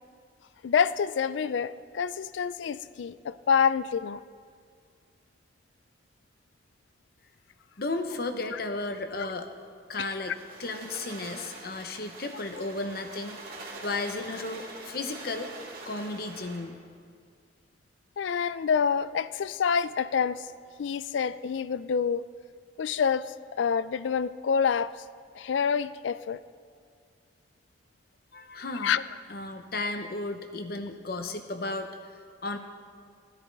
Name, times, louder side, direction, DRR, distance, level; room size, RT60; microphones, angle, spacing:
voice 1, 0.6-4.2 8.5-8.6 10.0-10.1 18.2-20.5 20.8-22.3 22.8-24.9 25.3-26.4 28.7-29.0, left 6 dB, 90° left, 16 dB, 0.4 m, -27 dB
voice 2, 7.8-9.5 9.9-13.4 13.8-15.5 15.9-16.8 28.3-29.0 29.3-31.9 32.4-32.6, left 2 dB, 55° left, 7 dB, 0.9 m, -34 dB
sound 1, 10.2-16.7, right 3 dB, 50° right, 2.2 m, -44 dB
16.0 x 10.5 x 4.0 m, 2.1 s
head